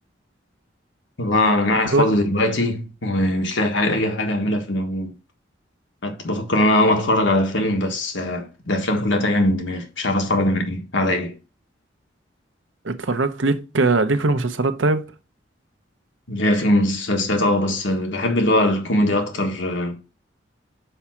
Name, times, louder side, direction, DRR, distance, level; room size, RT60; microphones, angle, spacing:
voice 1, 1.2-5.2 6.0-11.3 16.3-20.0, left 1 dB, 80° left, 1.5 m, -21 dB
voice 2, 12.8-15.1, right 3 dB, 85° right, 0.8 m, -20 dB
5.6 x 4.8 x 5.8 m
head